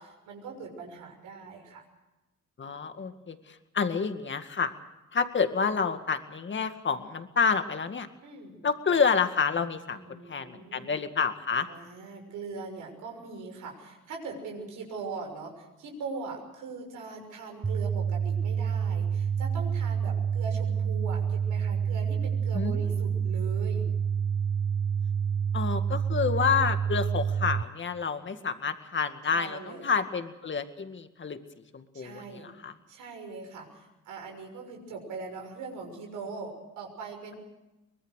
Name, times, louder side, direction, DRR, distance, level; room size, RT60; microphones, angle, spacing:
voice 1, 0.0-1.8 8.2-8.6 9.9-10.9 11.7-23.9 28.4-28.5 29.3-30.0 31.9-32.5 32.9-37.4, right 4 dB, 85° right, 2 dB, 6.4 m, -41 dB
voice 2, 2.6-4.7 5.1-8.1 8.6-10.0 10.3-11.7 22.5-22.8 25.5-31.4 31.7-32.7, left 5 dB, 40° left, 8 dB, 2.1 m, -29 dB
sound 1, 17.6-27.6, right 7 dB, 20° right, 0.7 m, -28 dB
24.0 x 20.5 x 6.5 m, 1.0 s
cardioid pair, 90°, 30 cm